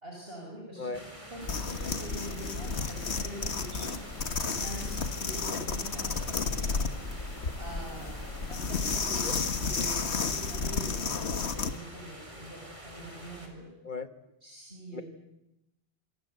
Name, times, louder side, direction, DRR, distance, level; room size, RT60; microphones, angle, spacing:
voice 1, 0.0-4.0 4.4-6.3 7.6-13.7 14.4-15.0, right 1 dB, 60° right, -1 dB, 6.0 m, -44 dB
voice 2, 0.8-1.0 9.2-9.3 13.8-14.1 14.9-15.0, left 4 dB, 45° left, 11 dB, 1.7 m, -36 dB
sound 1, 0.9-13.5, right 1 dB, 30° right, 4.4 m, -47 dB
sound 2, 1.4-11.8, left 5 dB, 75° left, 1.7 m, -32 dB
sound 3, 2.7-10.6, left 2 dB, 20° left, 1.4 m, -46 dB
27.0 x 26.5 x 8.1 m, 0.90 s
omnidirectional pair, 1.1 m